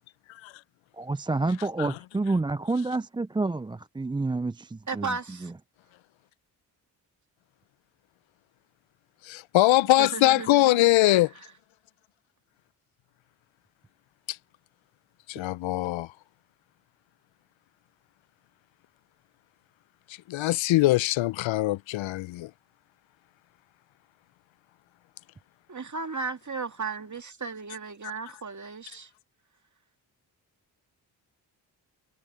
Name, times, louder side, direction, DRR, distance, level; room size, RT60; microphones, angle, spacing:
voice 1, 0.9-5.2 5.4-5.5, right 3 dB, 10° right, 0.4 m, -29 dB
voice 2, 4.9-5.5 10.0-10.9 25.7-29.1, right 4 dB, 35° right, 2.2 m, -35 dB
voice 3, 9.2-11.3 14.3-14.4 15.3-16.1 20.3-22.5, left 17 dB, 70° left, 0.6 m, -22 dB
supercardioid pair, 50°, 48 cm